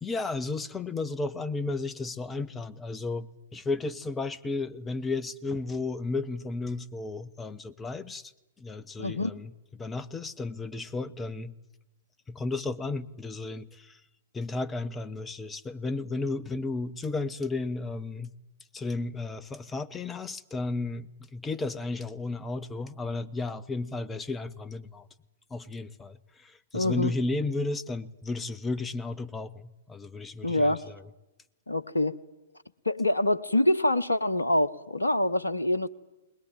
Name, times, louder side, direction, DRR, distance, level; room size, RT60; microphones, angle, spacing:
voice 1, 0.0-8.3 8.6-9.5 9.8-11.5 12.3-14.0 14.3-18.3 18.7-25.1 25.5-31.0, left 3 dB, 10° left, 15 dB, 0.9 m, -33 dB
voice 2, 9.0-9.3 26.7-27.1 30.4-30.8 31.7-32.2 32.8-35.9, left 1 dB, 80° left, 12 dB, 1.0 m, -25 dB
21.0 x 20.5 x 9.2 m, 1.0 s
figure-of-eight pair, 110°, 0 cm